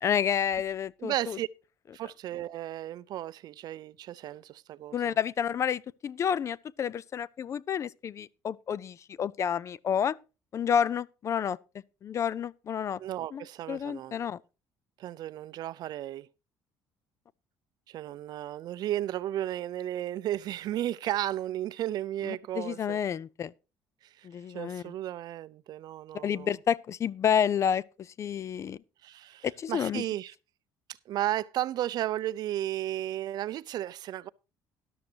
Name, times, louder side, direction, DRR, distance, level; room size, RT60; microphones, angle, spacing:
voice 1, 0.0-1.4 4.9-10.2 10.5-11.6 12.0-13.0 13.3-14.4 22.3-23.5 24.2-24.8 26.2-28.8 29.4-30.0, left 8 dB, 35° left, 0.4 m, -30 dB
voice 2, 1.0-1.5 1.9-5.2 13.0-14.2 15.0-16.3 17.9-23.0 24.2-26.5 29.0-30.3 31.1-34.3, right 13 dB, 55° right, 0.5 m, -34 dB
13.0 x 12.0 x 2.8 m
cardioid pair, 135°, 8 cm